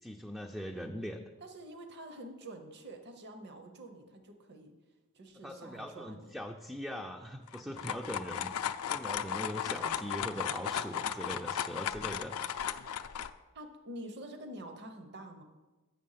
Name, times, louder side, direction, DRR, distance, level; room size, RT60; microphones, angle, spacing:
voice 1, 0.0-1.3 5.4-8.5 8.8-12.4, equal, ahead, 2 dB, 0.4 m, -41 dB
voice 2, 1.4-4.7 5.1-6.4 13.5-15.4, right 1 dB, 50° right, 6 dB, 0.8 m, -47 dB
sound 1, 7.5-13.3, left 8 dB, 90° left, 0.4 m, -35 dB
7.5 x 6.9 x 5.6 m, 1.2 s
head